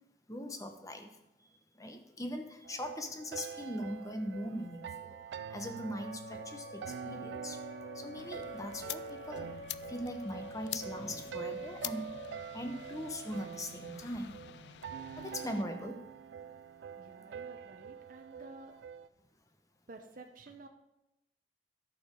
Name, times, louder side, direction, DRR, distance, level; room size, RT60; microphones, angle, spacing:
voice 1, 0.3-1.1 1.7-9.5 9.9-12.1 12.5-14.3 15.2-16.0 16.3-16.6 17.2-17.3, equal, 20° left, 6 dB, 0.9 m, -41 dB
sound 1, 2.6-19.1, right 7 dB, 75° right, 0.3 m, -45 dB
Wind instrument woodwind instrument, 6.0-12.5, left 2 dB, 90° left, 4.4 m, -48 dB
sound 2, 8.2-15.6, left 13 dB, 70° left, 0.3 m, -47 dB
voice 2, 17.0-18.8 19.9-20.7, right 3 dB, 50° right, 4 dB, 0.8 m, -52 dB
11.0 x 6.7 x 5.2 m, 0.92 s
head